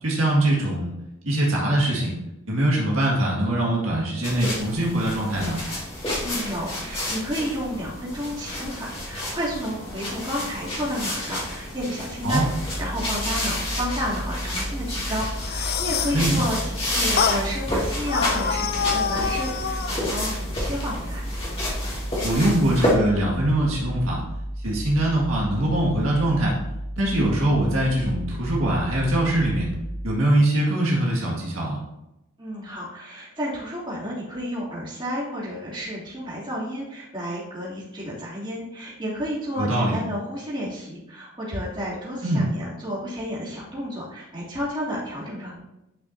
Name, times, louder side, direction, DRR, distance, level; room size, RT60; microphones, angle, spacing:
voice 1, 0.0-0.9 1.2-2.1 2.5-5.6 12.2-12.4 16.1-16.4 22.2-24.2 24.6-26.5 27.0-29.7 30.0-31.8 39.6-40.0 42.2-42.4, right 1 dB, 70° right, -4 dB, 2.0 m, -22 dB
sound 1, 4.2-22.9, left 1 dB, 25° left, 2.3 m, -30 dB
voice 2, 6.2-21.2 32.4-45.6, equal, 20° right, -8 dB, 3.0 m, -31 dB
sound 2, 12.2-30.1, equal, 80° left, 1.7 m, -33 dB
sound 3, 15.2-16.2 17.2-17.4 18.1-20.0, left 6 dB, 45° left, 0.4 m, -26 dB
10.5 x 5.5 x 2.8 m, 0.90 s
head